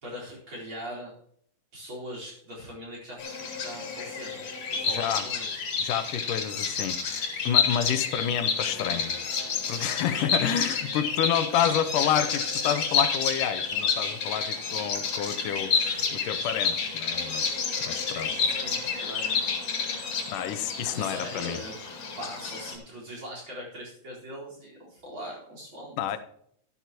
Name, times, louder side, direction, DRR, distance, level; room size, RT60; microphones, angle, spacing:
voice 1, 0.0-1.1 1.7-5.6 9.5-11.0 15.8-16.1 18.1-19.6 20.9-21.8 22.2-26.0, equal, 35° right, -4 dB, 5.0 m, -42 dB
Bird vocalization bird call bird song, 3.2-22.8, left 5 dB, 55° left, 3.1 m, -29 dB
voice 2, 4.9-5.3 5.8-9.2 9.7-18.3 20.3-21.6 26.0-26.2, left 9 dB, 85° left, 11 dB, 2.3 m, -29 dB
12.5 x 12.0 x 3.0 m, 0.66 s
omnidirectional pair, 3.7 m